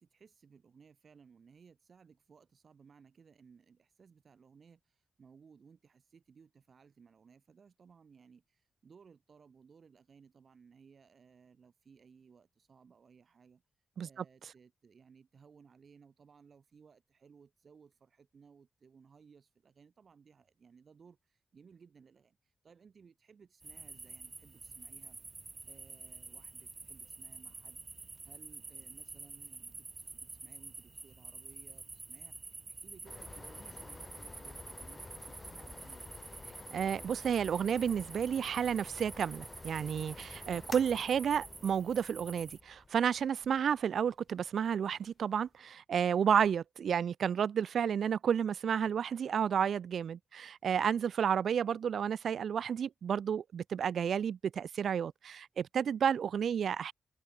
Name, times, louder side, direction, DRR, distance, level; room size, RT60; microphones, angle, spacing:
voice 1, 0.0-13.6 14.0-25.2 25.7-36.2, right 6 dB, 50° right, 4.1 m, -61 dB
sound 1, 23.6-42.6, right 3 dB, 25° right, 1.1 m, -49 dB
sound 2, 33.0-45.5, left 3 dB, 25° left, 0.7 m, -51 dB
voice 2, 36.7-56.9, right 8 dB, 75° right, 0.5 m, -31 dB
wide cardioid pair, 165°, 0 cm